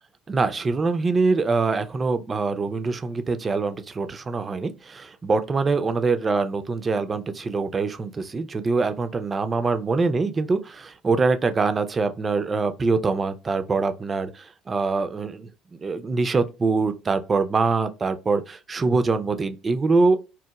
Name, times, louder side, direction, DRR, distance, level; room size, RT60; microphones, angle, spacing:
voice 1, 0.3-20.2, right 4 dB, 30° right, 0.3 m, -24 dB
2.8 x 2.1 x 2.2 m
hypercardioid pair, 75°, 0 cm